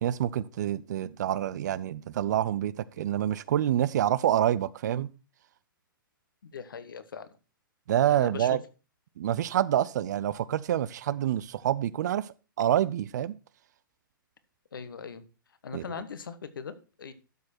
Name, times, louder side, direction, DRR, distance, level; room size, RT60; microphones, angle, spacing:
voice 1, 0.0-5.1 7.9-8.6 9.2-13.4 15.7-15.8, right 11 dB, 55° right, 0.5 m, -27 dB
voice 2, 6.4-7.3 8.1-8.6 14.7-15.2 15.6-17.1, left 6 dB, 70° left, 1.3 m, -40 dB
12.0 x 6.4 x 4.3 m
figure-of-eight pair, 115°, 12 cm